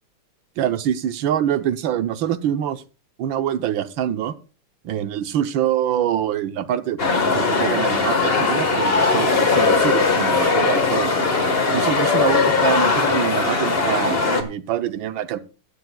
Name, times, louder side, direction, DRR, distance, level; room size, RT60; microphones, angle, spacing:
voice 1, 0.6-2.8 3.2-4.3 4.8-11.1 11.7-15.4, right 10 dB, 70° right, 12 dB, 1.4 m, -25 dB
sound 1, 7.0-14.4, left 4 dB, 30° left, 1.4 m, -19 dB
17.0 x 12.5 x 2.3 m, 0.33 s
omnidirectional pair, 2.4 m